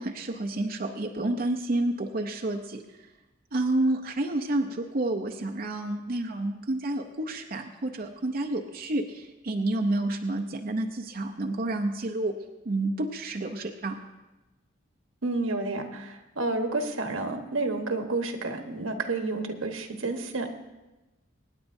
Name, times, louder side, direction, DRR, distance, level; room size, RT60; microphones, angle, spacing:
voice 1, 0.0-3.1 3.5-12.4 12.6-14.0, right 2 dB, 45° right, 3 dB, 0.6 m, -29 dB
voice 2, 15.2-20.5, right 3 dB, 85° right, 5 dB, 1.3 m, -30 dB
25.5 x 9.9 x 2.7 m, 1.1 s
head